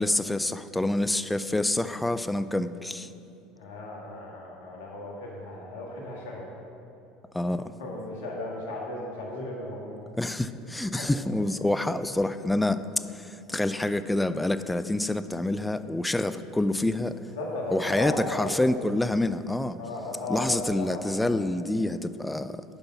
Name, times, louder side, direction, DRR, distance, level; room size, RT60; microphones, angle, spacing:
voice 1, 0.0-3.1 7.3-7.7 10.2-12.9 13.1-17.2 17.7-19.8 20.3-22.6, left 1 dB, 10° left, 12 dB, 0.3 m, -27 dB
voice 2, 3.5-6.5 7.4-7.5 7.8-10.0 10.9-11.1 17.3-18.6 19.8-21.0, left 2 dB, 80° left, -2 dB, 1.6 m, -35 dB
6.9 x 5.4 x 5.8 m, 2.6 s
hypercardioid pair, 80°, 0 cm